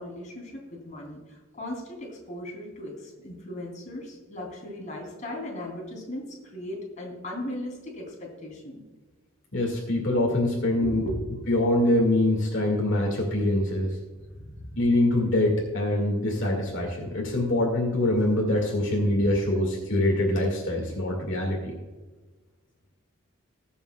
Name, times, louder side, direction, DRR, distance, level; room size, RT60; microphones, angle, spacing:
voice 1, 0.0-8.8 10.8-11.4 14.3-14.8, left 1 dB, 35° left, -1 dB, 3.1 m, -37 dB
voice 2, 9.5-11.0 11.5-14.0 14.8-21.7, left 1 dB, 60° left, -1 dB, 2.1 m, -24 dB
21.0 x 7.0 x 2.3 m, 1.3 s
head